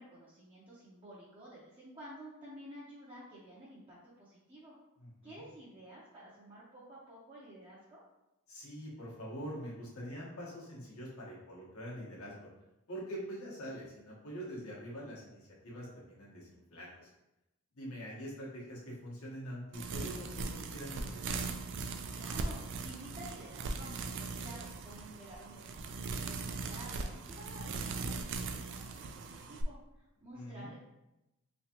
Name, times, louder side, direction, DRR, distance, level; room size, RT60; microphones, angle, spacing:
voice 1, 0.0-4.8 5.2-8.0 22.1-30.8, right 1 dB, 25° right, -8 dB, 0.7 m, -52 dB
voice 2, 5.0-5.4 8.5-12.4 12.9-17.1 17.7-21.4 30.3-30.7, equal, 75° left, -4 dB, 1.2 m, -44 dB
sound 1, 19.7-29.6, right 4 dB, 55° right, 0.3 m, -39 dB
3.5 x 3.2 x 2.9 m, 0.93 s
head